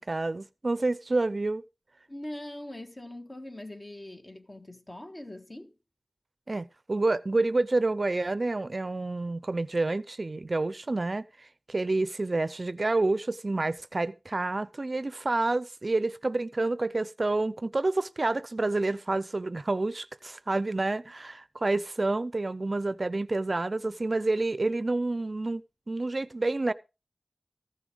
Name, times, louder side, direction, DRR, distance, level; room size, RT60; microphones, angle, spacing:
voice 1, 0.0-1.6 6.5-25.6 25.9-26.7, right 2 dB, 50° right, 0.5 m, -28 dB
voice 2, 2.1-5.7, left 1 dB, 35° left, 1.5 m, -42 dB
14.5 x 6.2 x 5.0 m
wide cardioid pair, 55°, 0 cm